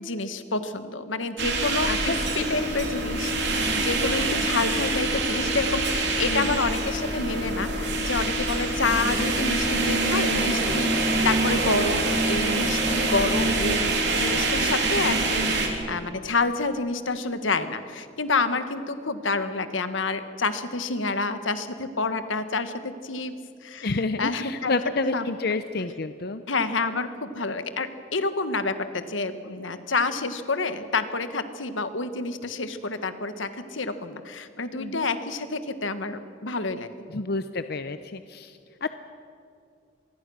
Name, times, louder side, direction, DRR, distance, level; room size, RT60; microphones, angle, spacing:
voice 1, 0.0-23.3 23.6-25.2 26.5-36.9, left 3 dB, 85° left, 10 dB, 1.5 m, -28 dB
sound 1, 1.4-15.7, right 2 dB, 60° right, 3.5 m, -25 dB
voice 2, 1.9-2.3 2.5-2.6 6.3-6.6 23.8-26.4 34.8-35.1 37.1-38.9, left 3 dB, 55° left, 10 dB, 0.7 m, -30 dB
26.5 x 21.0 x 6.4 m, 2.4 s
head